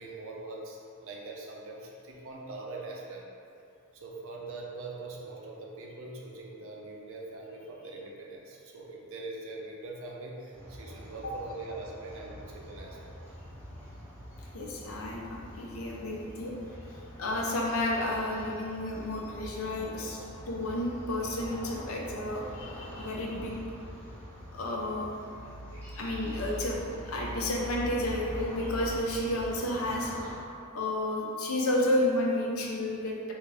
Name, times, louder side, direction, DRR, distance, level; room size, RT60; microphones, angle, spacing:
voice 1, 0.0-3.3 3.9-13.4 16.9-17.2 25.4-25.6, right 3 dB, 65° right, -2 dB, 0.5 m, -43 dB
sound 1, 10.5-30.3, equal, 10° left, 0.8 m, -44 dB
voice 2, 14.5-16.5 17.2-20.2 20.5-23.5 24.5-25.1 26.0-30.1 30.7-33.3, left 1 dB, 75° left, -2 dB, 0.6 m, -31 dB
3.5 x 2.5 x 3.2 m, 2.6 s
head